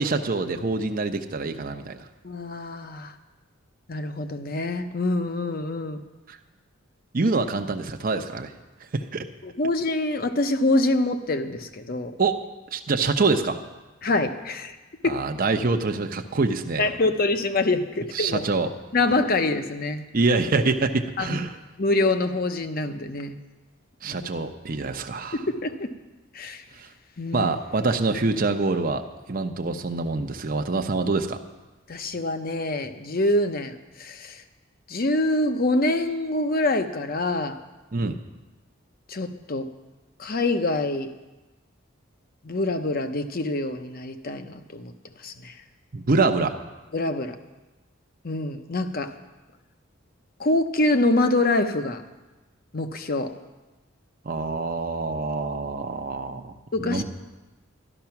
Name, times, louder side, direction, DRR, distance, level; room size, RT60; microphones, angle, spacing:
voice 1, 0.0-2.0 6.3-6.4 7.1-8.5 8.9-9.3 12.2-12.4 12.7-13.6 15.0-16.9 18.1-18.7 20.1-21.6 24.0-25.4 26.8-26.9 27.3-29.0 29.3-31.4 37.9-38.2 45.9-46.5 54.2-56.5 56.8-57.0, right 3 dB, 45° right, 5 dB, 0.7 m, -25 dB
voice 2, 2.2-3.1 3.9-6.0 9.4-12.1 14.0-14.8 15.0-15.2 16.8-18.4 18.9-20.0 21.2-21.4 21.8-23.3 24.1-24.2 25.5-25.9 26.3-26.6 27.2-27.5 31.9-34.4 34.9-37.6 39.1-39.7 40.2-41.1 42.4-44.9 45.2-45.6 46.9-47.3 48.2-49.1 50.4-52.0 52.7-53.3 56.7-57.0, left 2 dB, 45° left, 8 dB, 0.8 m, -25 dB
13.0 x 12.0 x 5.9 m, 1.2 s
head